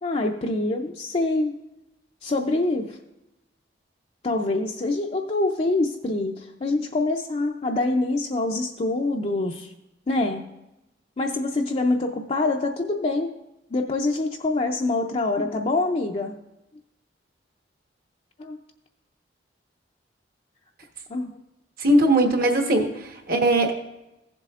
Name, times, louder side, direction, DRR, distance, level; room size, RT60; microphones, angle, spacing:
voice 1, 0.0-1.6 2.2-3.0 4.2-9.7 10.1-10.5 11.2-13.3 13.7-16.4 18.4-18.6 21.1-21.4, left 2 dB, 35° left, 1 dB, 0.5 m, -25 dB
voice 2, 21.8-23.7, right 1 dB, 55° right, 3 dB, 1.2 m, -20 dB
15.5 x 7.5 x 2.4 m, 0.93 s
head